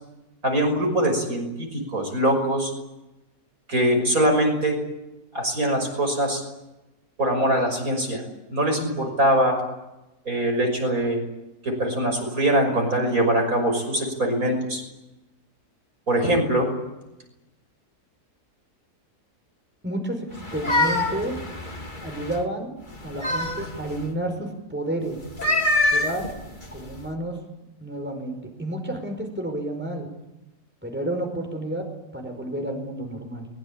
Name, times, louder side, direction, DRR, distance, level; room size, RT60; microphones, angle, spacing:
voice 1, 0.4-2.7 3.7-4.8 5.3-6.4 7.2-8.2 8.5-9.6 10.2-11.2 11.6-14.8 16.1-16.7, right 1 dB, 60° right, 3 dB, 6.5 m, -22 dB
voice 2, 19.8-21.3 22.0-22.7 23.0-25.2 25.9-26.3 26.7-27.4 27.8-30.1 30.8-31.9 32.1-33.5, right 1 dB, 5° right, 3 dB, 5.1 m, -30 dB
sound 1, 20.3-22.4 22.9-24.1 25.2-27.1, left 2 dB, 30° left, 2.7 m, -26 dB
23.0 x 22.0 x 9.0 m, 0.96 s
omnidirectional pair, 1.7 m